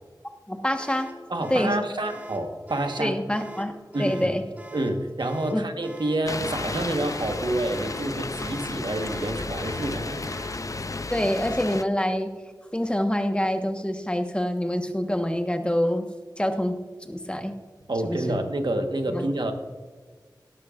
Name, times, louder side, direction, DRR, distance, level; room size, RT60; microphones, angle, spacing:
voice 1, 0.5-1.1 1.5-1.8 3.0-3.7 4.0-4.4 5.5-5.6 11.1-12.3 12.7-16.0 16.4-16.8 17.1-17.5 18.0-18.4 19.1-19.2, equal, 15° left, 6 dB, 1.3 m, -26 dB
sound 1, 0.8-10.7, equal, 20° right, 1.9 m, -43 dB
voice 2, 1.3-3.2 3.9-4.4 4.7-10.3 17.9-19.5, right 1 dB, 80° right, 5 dB, 1.3 m, -28 dB
sound 2, 6.3-11.8, left 3 dB, 45° left, 0.5 m, -33 dB
17.5 x 12.0 x 2.5 m, 1.4 s
wide cardioid pair, 55°, 8 cm